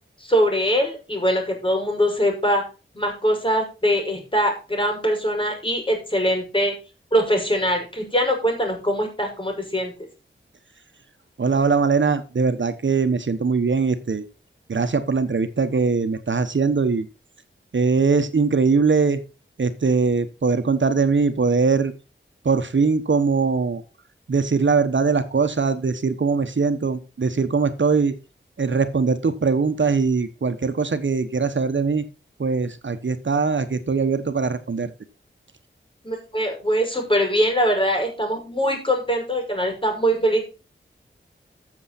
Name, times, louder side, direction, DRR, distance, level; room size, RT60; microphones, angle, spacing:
voice 1, 0.2-2.6 2.9-6.7 7.1-9.9 36.0-40.4, equal, 25° left, 2 dB, 6.4 m, -22 dB
voice 2, 11.4-14.2 14.7-17.1 17.7-19.2 19.6-21.9 22.4-23.8 24.3-28.1 28.6-32.0 32.4-34.9, right 4 dB, 65° right, 9 dB, 1.2 m, -21 dB
13.5 x 7.1 x 4.2 m, 0.31 s
wide cardioid pair, 55°, 21 cm